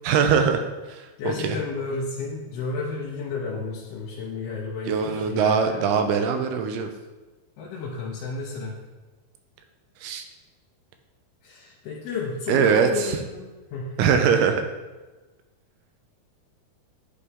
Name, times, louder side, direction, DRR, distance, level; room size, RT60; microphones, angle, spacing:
voice 1, 0.1-1.6 4.9-6.9 10.0-10.2 12.5-13.2 14.0-14.7, right 6 dB, 85° right, 6 dB, 2.4 m, -22 dB
voice 2, 1.2-5.8 7.6-8.8 11.4-14.0, left 4 dB, 80° left, -4 dB, 2.8 m, -32 dB
11.0 x 4.2 x 3.6 m, 1.2 s
omnidirectional pair, 4.6 m